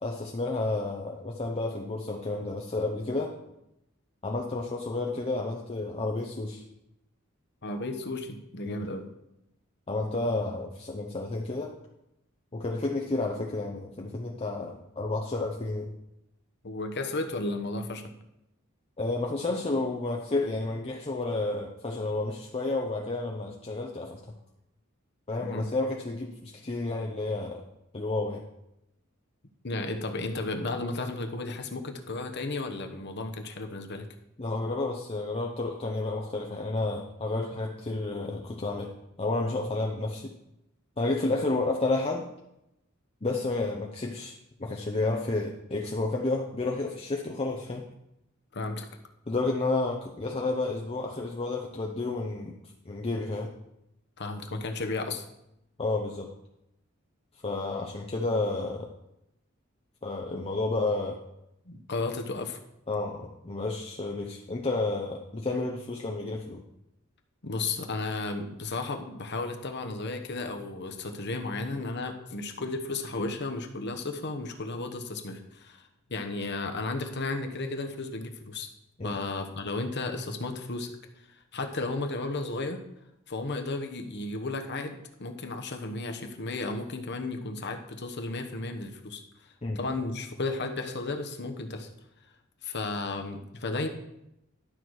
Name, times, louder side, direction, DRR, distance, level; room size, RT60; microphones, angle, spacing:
voice 1, 0.0-3.4 4.2-6.6 8.6-8.8 9.9-11.8 12.5-15.9 19.0-24.2 25.3-27.6 27.9-28.4 34.4-40.3 41.0-42.3 43.2-44.3 44.6-47.9 49.3-52.6 52.9-53.5 55.8-56.3 57.4-58.9 60.0-61.2 62.9-66.6 79.0-79.2 89.6-89.8, left 2 dB, 30° left, 0 dB, 0.8 m, -31 dB
voice 2, 7.6-9.1 16.6-18.1 25.4-25.7 29.6-34.1 48.5-48.9 54.2-55.2 61.6-62.6 67.4-78.7 79.0-80.9 81.3-82.8 83.3-91.9 92.6-93.9, left 3 dB, 55° left, 6 dB, 1.1 m, -34 dB
11.5 x 6.0 x 4.8 m, 0.86 s
head